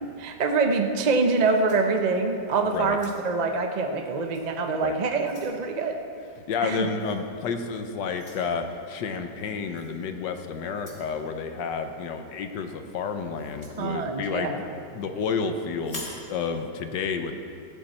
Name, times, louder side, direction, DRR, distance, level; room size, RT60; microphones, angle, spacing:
voice 1, 0.0-6.0 6.6-6.9 13.8-14.7, right 4 dB, 45° right, 4 dB, 0.5 m, -25 dB
sound 1, 1.3-2.4 2.8-3.5 4.3-4.5 4.9-5.6 7.0-7.2 8.1-8.5 9.8-9.9 10.7-11.1 13.4-13.8 15.8-16.3, left 1 dB, 20° left, 2.7 m, -44 dB
voice 2, 2.7-3.0 4.8-4.9 6.5-17.3, left 5 dB, 75° left, 7 dB, 1.4 m, -30 dB
15.5 x 10.5 x 4.3 m, 2.5 s
omnidirectional pair, 1.9 m